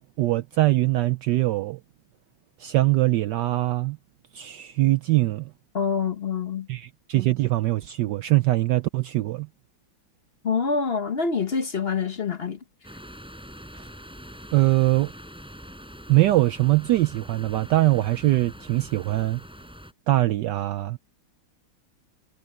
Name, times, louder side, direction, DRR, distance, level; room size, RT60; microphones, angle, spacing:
voice 1, 0.2-1.8 2.6-4.0 4.3-5.5 6.7-9.5 13.7-13.9 14.5-15.1 16.1-19.4 20.1-21.0, right 17 dB, 75° right, 1.0 m, -22 dB
voice 2, 5.7-6.7 10.4-12.6, left 5 dB, 45° left, 0.8 m, -26 dB
sound 1, 12.8-19.9, equal, ahead, 4.1 m, -44 dB
omnidirectional pair, 2.3 m